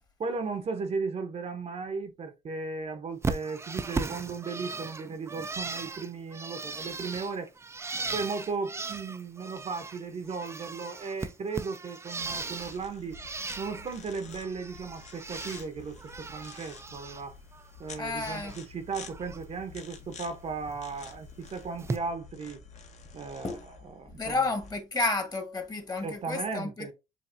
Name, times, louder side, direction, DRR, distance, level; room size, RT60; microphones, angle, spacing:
voice 1, 0.2-7.5 8.1-13.2 13.6-17.3 17.8-22.6 23.1-23.6 24.0-24.3 26.0-26.9, right 4 dB, 40° right, 0.8 m, -36 dB
Bird, 3.2-10.0 10.3-12.8 13.1-14.0 14.3-15.7 16.0-17.2 17.5-18.6 19.0-19.4 20.7-20.8 21.8-22.0, right 3 dB, 15° right, 0.4 m, -37 dB
sound 1, 12.2-24.7, left 5 dB, 45° left, 0.9 m, -49 dB
voice 2, 17.9-18.6 23.4-23.7 24.2-26.9, left 3 dB, 25° left, 1.2 m, -31 dB
6.9 x 2.6 x 2.6 m
cardioid pair, 110°, 17 cm